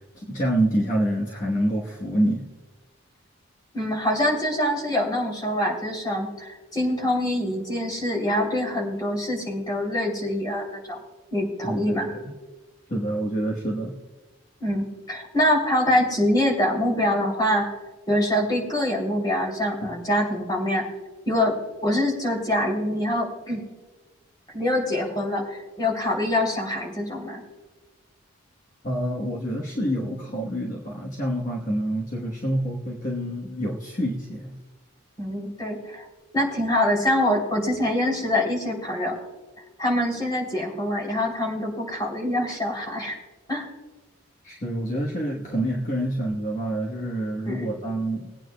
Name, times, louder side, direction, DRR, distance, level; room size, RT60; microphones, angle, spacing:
voice 1, 0.0-2.4 11.6-12.3 12.9-13.9 19.8-19.9 28.8-34.6 44.4-48.3, right 1 dB, 35° left, -3 dB, 1.1 m, -27 dB
voice 2, 3.7-11.0 11.3-12.1 14.6-17.7 18.1-20.8 21.3-21.6 21.8-23.6 24.5-27.4 35.2-36.1 36.3-39.2 39.8-43.2 43.5-43.7 47.4-47.7, left 1 dB, 20° left, -2 dB, 3.0 m, -25 dB
22.0 x 9.0 x 2.2 m, 1.2 s
head